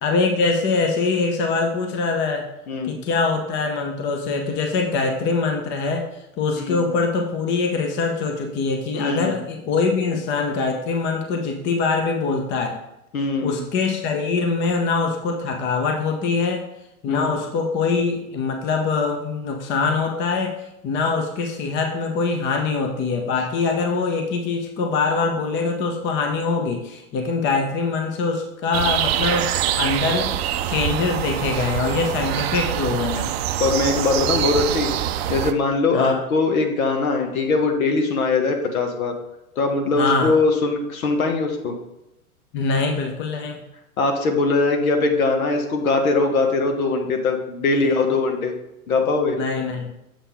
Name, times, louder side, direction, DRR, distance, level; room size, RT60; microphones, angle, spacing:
voice 1, 0.0-2.5 2.8-6.1 6.4-12.8 13.4-16.6 17.0-20.5 20.8-29.5 29.8-30.4 30.7-33.3 35.9-36.2 40.0-40.3 42.5-43.6 47.8-48.0 49.4-49.9, left 4 dB, 25° left, 3 dB, 0.9 m, -23 dB
voice 2, 8.9-9.4 13.1-13.6 17.1-17.3 33.6-34.9 35.3-39.1 39.6-41.8 44.0-48.5 48.9-49.4, left 3 dB, 65° left, 4 dB, 1.4 m, -21 dB
sound 1, 28.7-35.5, right 11 dB, 45° right, 0.5 m, -24 dB
7.3 x 5.6 x 3.6 m, 0.87 s
hypercardioid pair, 115°, 45 cm